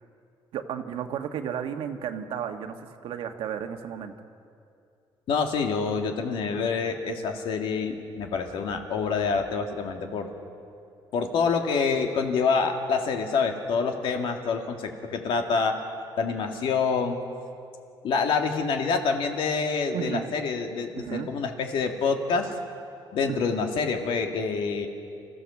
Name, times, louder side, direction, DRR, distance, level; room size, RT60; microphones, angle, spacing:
voice 1, 0.5-4.1 19.9-20.3 21.0-21.3 23.3-23.4, right 8 dB, 75° right, 5 dB, 1.5 m, -33 dB
voice 2, 5.3-10.3 11.1-15.8 16.2-17.2 18.0-22.5 23.1-24.9, left 5 dB, 70° left, 3 dB, 2.2 m, -27 dB
29.5 x 15.0 x 7.2 m, 2.5 s
cardioid pair, 155°, 9 cm